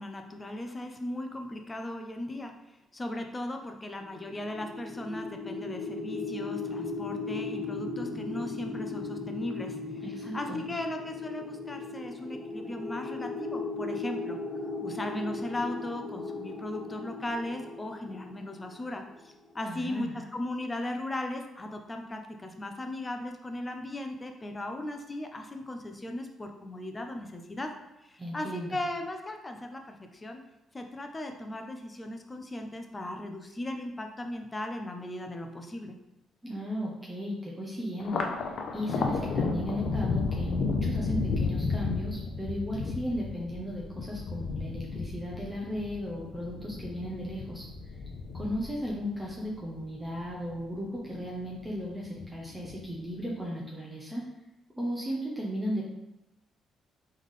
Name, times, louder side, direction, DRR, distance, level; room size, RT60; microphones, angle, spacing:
voice 1, 0.0-2.5 2.9-9.8 10.3-14.4 14.8-27.7 28.1-30.4 30.7-35.9, left 1 dB, 20° left, 5 dB, 0.6 m, -37 dB
sound 1, 4.0-19.1, left 3 dB, 40° left, 1.0 m, -37 dB
voice 2, 10.0-10.6 19.6-20.2 28.2-28.8 36.4-38.2 38.7-47.6 48.3-54.2 54.7-55.9, equal, 15° right, -4 dB, 0.8 m, -35 dB
Thunder, 38.0-50.7 51.1-51.9 52.2-53.1, left 4 dB, 65° left, 0.5 m, -33 dB
3.8 x 3.2 x 3.6 m, 0.93 s
cardioid pair, 90°, 0 cm